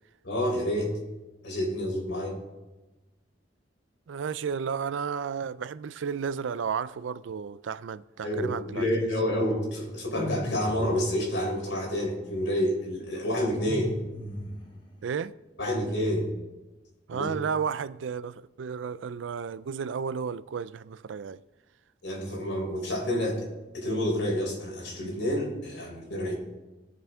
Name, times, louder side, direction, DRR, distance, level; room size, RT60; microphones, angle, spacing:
voice 1, 0.2-0.9 1.4-2.4 8.2-13.9 15.6-16.3 17.1-17.3 22.0-23.4 23.7-26.3, equal, 85° left, 3.9 m, -28 dB
voice 2, 4.1-9.1 15.0-15.3 17.1-21.4, right 6 dB, 85° right, 0.4 m, -33 dB
sound 1, 10.1-11.0 13.6-14.8, left 1 dB, 25° left, 1.5 m, -36 dB
19.0 x 7.0 x 3.6 m
head